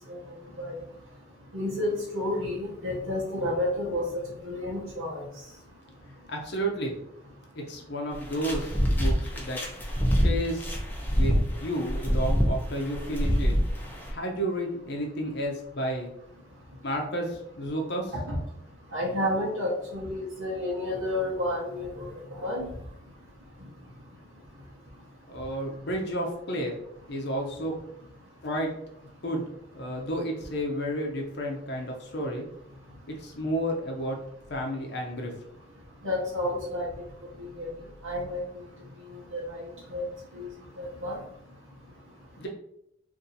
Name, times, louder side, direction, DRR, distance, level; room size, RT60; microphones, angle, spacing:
voice 1, 1.5-4.0 4.4-5.2 18.3-18.4 18.9-22.7 36.0-36.9 37.6-37.7 38.0-38.4 39.3-39.6 39.9-40.0 40.3-40.5 40.8-41.2, left 1 dB, 80° right, -7 dB, 1.0 m, -30 dB
voice 2, 6.3-7.0 7.5-9.6 10.2-10.7 11.1-11.3 11.6-13.6 14.1-16.1 16.8-18.1 25.3-26.7 27.1-27.7 28.4-28.7 29.2-29.5 29.7-32.5 33.1-34.2 34.5-35.3 42.4-42.5, equal, 55° left, 1 dB, 0.6 m, -31 dB
sound 1, 8.1-14.1, equal, 10° left, 0.6 m, -26 dB
2.7 x 2.6 x 3.9 m, 0.76 s
head